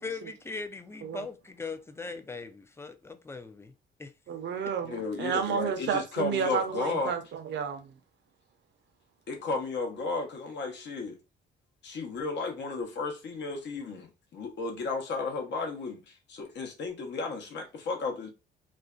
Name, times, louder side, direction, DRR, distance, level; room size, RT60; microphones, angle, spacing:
voice 1, 0.0-3.7 4.0-4.1, left 4 dB, 15° left, 0.4 m, -40 dB
voice 2, 4.3-7.9, right 7 dB, 60° right, 0.6 m, -31 dB
voice 3, 4.9-7.1 9.3-11.2 11.8-14.1 14.3-18.3, left 3 dB, 60° left, 0.8 m, -33 dB
2.5 x 2.1 x 2.3 m
cardioid pair, 90°, 20 cm